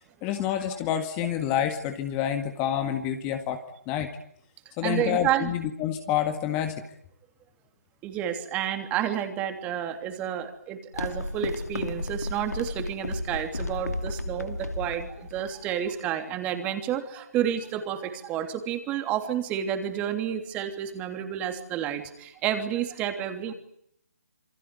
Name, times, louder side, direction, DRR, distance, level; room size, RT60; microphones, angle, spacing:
voice 1, 0.2-3.6 3.9-4.1 4.8-6.8, left 10 dB, 20° left, 7 dB, 1.9 m, -28 dB
voice 2, 4.8-5.5 8.0-23.5, right 10 dB, 15° right, 7 dB, 3.1 m, -30 dB
sound 1, 10.9-16.0, left 2 dB, 85° left, 2.5 m, -33 dB
28.0 x 22.0 x 9.6 m, 0.71 s
figure-of-eight pair, 150°, 8 cm